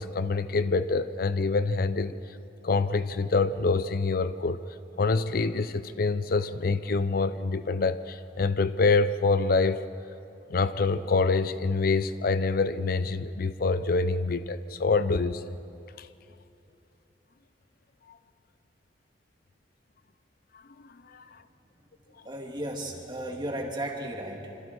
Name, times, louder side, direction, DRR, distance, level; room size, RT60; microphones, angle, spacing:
voice 1, 0.0-2.2 2.6-4.6 5.0-9.8 10.5-15.4 16.0-16.1 21.1-21.2, left 3 dB, 55° left, 13 dB, 0.5 m, -26 dB
voice 2, 22.2-24.6, right 1 dB, 25° right, 0 dB, 2.7 m, -35 dB
26.5 x 26.5 x 4.6 m, 2.8 s
head